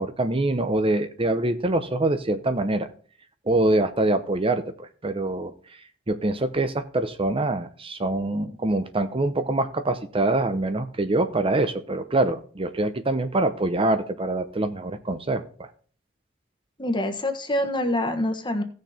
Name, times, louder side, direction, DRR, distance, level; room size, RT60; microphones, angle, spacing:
voice 1, 0.0-2.9 3.5-5.5 6.1-15.7, right 2 dB, 30° right, 10 dB, 0.8 m, -24 dB
voice 2, 16.8-18.6, left 1 dB, 25° left, 6 dB, 1.4 m, -25 dB
16.5 x 6.5 x 4.4 m, 0.43 s
head